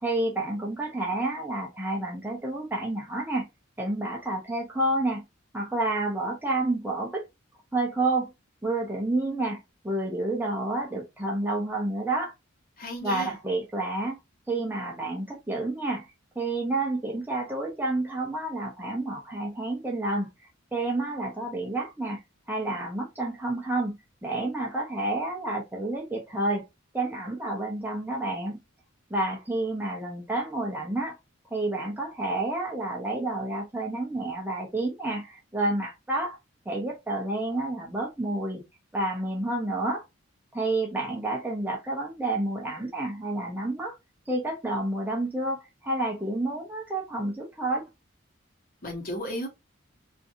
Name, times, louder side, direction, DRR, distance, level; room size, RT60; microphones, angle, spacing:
voice 1, 0.0-3.4 3.8-5.2 5.5-7.3 7.7-8.3 8.6-12.3 13.0-14.2 14.5-16.1 16.4-20.3 20.7-22.2 22.5-26.7 26.9-28.6 29.1-31.2 31.5-36.4 36.7-38.6 38.9-40.0 40.5-43.9 44.3-47.8, right 2 dB, 10° right, 0.5 m, -29 dB
voice 2, 12.8-13.4 48.8-49.5, equal, 45° left, 0.9 m, -34 dB
2.6 x 2.4 x 2.5 m
head